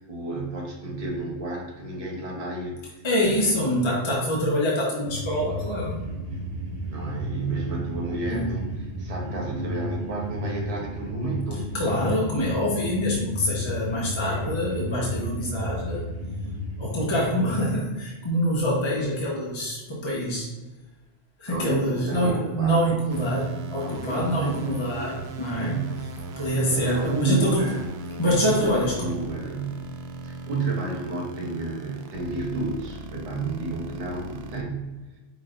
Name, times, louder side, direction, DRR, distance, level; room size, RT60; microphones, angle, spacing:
voice 1, 0.0-3.5 6.9-8.7 9.0-11.6 21.5-23.0 23.8-24.6 25.6-26.2 26.4-27.8 28.2-29.8 30.2-35.2, right 3 dB, 30° right, -2 dB, 1.0 m, -31 dB
voice 2, 3.0-6.0 8.2-8.5 9.6-9.7 11.5-16.1 16.8-20.5 21.4-25.8 26.4-27.6 28.2-29.2, equal, 25° left, -5 dB, 0.8 m, -25 dB
sound 1, 5.1-17.0, equal, 80° right, 1.6 m, -33 dB
sound 2, 23.1-34.6, right 2 dB, 65° right, 0.7 m, -38 dB
5.0 x 4.1 x 2.5 m, 1.2 s
omnidirectional pair, 1.3 m